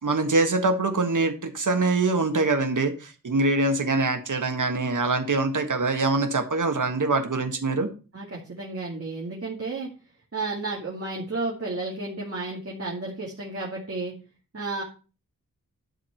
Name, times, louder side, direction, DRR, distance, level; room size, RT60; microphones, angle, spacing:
voice 1, 0.0-7.9, right 3 dB, 65° right, 6 dB, 1.5 m, -24 dB
voice 2, 8.1-9.9 10.3-14.1 14.5-14.8, right 3 dB, 45° right, -4 dB, 2.3 m, -32 dB
11.0 x 4.6 x 5.7 m, 0.34 s
wide cardioid pair, 100°, 33 cm